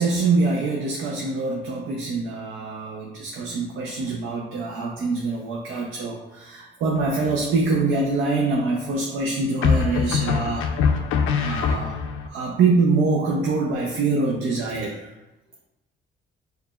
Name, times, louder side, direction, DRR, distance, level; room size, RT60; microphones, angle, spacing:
voice 1, 0.0-10.7 11.4-12.0 12.3-15.0, right 3 dB, 90° right, 0 dB, 0.5 m, -24 dB
sound 1, 7.0-7.5 9.6-12.3, left 6 dB, 85° left, 0.4 m, -23 dB
4.7 x 3.2 x 2.2 m, 1.0 s
cardioid pair, 90°, 20 cm